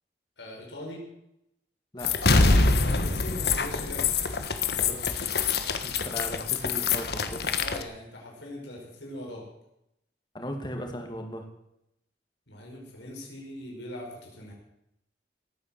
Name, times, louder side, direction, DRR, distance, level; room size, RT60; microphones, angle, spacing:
voice 1, 0.4-1.1 2.9-4.2 7.6-9.5 12.5-14.5, left 1 dB, 85° left, -1 dB, 5.5 m, -41 dB
voice 2, 1.9-2.6 4.8-5.3 5.8-7.5 10.3-11.5, equal, 25° left, 4 dB, 2.5 m, -38 dB
sound 1, 2.0-7.8, left 4 dB, 60° left, 1.4 m, -25 dB
18.5 x 9.4 x 7.8 m, 0.83 s
head